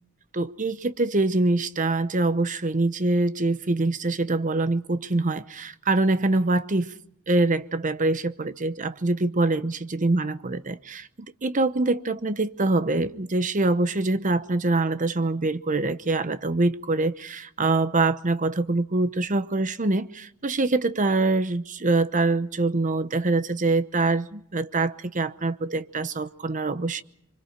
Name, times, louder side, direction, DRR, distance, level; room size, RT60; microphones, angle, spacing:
voice 1, 0.3-6.9 7.3-11.1 11.4-27.0, right 2 dB, 35° right, 0.9 m, -24 dB
26.5 x 24.5 x 5.1 m
head